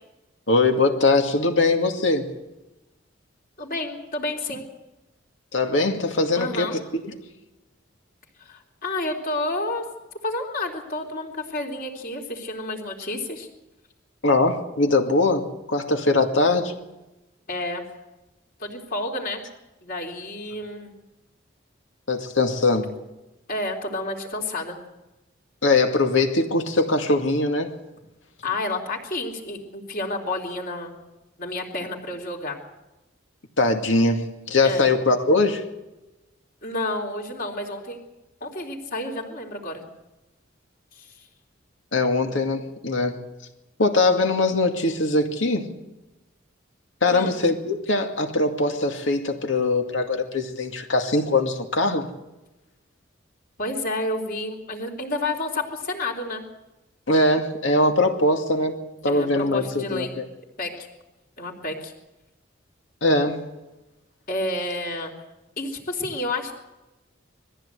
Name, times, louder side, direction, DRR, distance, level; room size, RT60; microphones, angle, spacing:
voice 1, 0.5-2.4 5.5-7.1 14.2-16.7 22.1-22.9 25.6-27.8 33.6-35.7 41.9-43.2 43.8-45.7 47.0-52.1 57.1-60.3 63.0-63.5, left 2 dB, 80° left, 2.3 m, -21 dB
voice 2, 3.6-4.6 6.3-6.8 8.5-9.8 10.2-13.5 17.5-17.8 18.6-19.4 19.8-20.9 23.5-24.8 28.4-30.9 31.4-32.6 34.6-34.9 36.6-38.0 38.4-39.8 41.0-41.1 47.1-47.4 53.6-56.4 59.1-60.1 60.6-60.9 61.4-61.9 64.3-65.1 65.6-66.5, left 2 dB, 50° left, 3.6 m, -30 dB
21.0 x 15.0 x 8.3 m
head